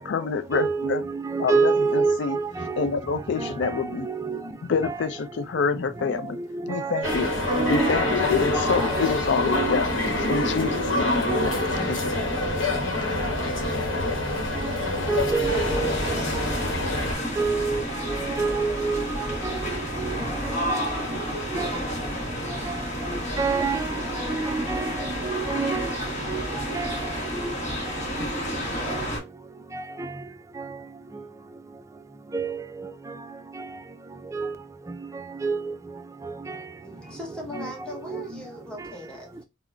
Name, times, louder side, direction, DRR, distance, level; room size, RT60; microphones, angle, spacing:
voice 1, 0.0-1.0 1.4-2.4 2.8-4.1 4.7-6.4 6.7-7.3 7.7-9.9 10.2-11.6 11.9-12.3, left 5 dB, 65° left, 0.4 m, -27 dB
voice 2, 0.5-2.9 3.4-4.5 4.8-5.0 6.4-9.1 9.5-9.7 10.1-10.4 11.3-11.5 14.6-14.7 15.1-16.4 17.4-19.1 19.4-20.4 20.7-21.2 21.5-21.7 22.7-22.8 23.1-25.9 26.3-26.5 26.7-27.0 27.3-27.5 28.9-29.1 29.7-30.1 30.6-30.7 32.3-32.9 33.6-33.7 34.3-34.5 35.4-35.7 36.5-36.6 37.5-37.7 38.1-38.4, right 4 dB, 15° right, 0.3 m, -28 dB
sound 1, 7.0-17.1, left 2 dB, 90° left, 0.9 m, -26 dB
sound 2, 15.5-29.2, equal, 40° left, 1.0 m, -30 dB
voice 3, 36.8-39.4, left 1 dB, 5° left, 0.9 m, -39 dB
3.6 x 2.1 x 2.2 m
head